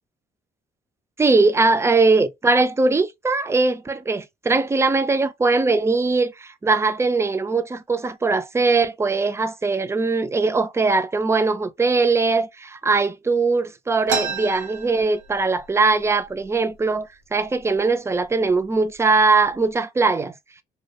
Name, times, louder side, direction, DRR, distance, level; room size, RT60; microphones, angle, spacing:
voice 1, 1.2-20.3, right 3 dB, 15° right, 0.3 m, -20 dB
sound 1, 14.1-15.7 16.0-16.1 16.4-17.0 17.6-17.7 18.5-18.6 19.1-19.6, right 5 dB, 90° right, 0.7 m, -29 dB
2.3 x 2.1 x 2.7 m
cardioid pair, 90°, 20 cm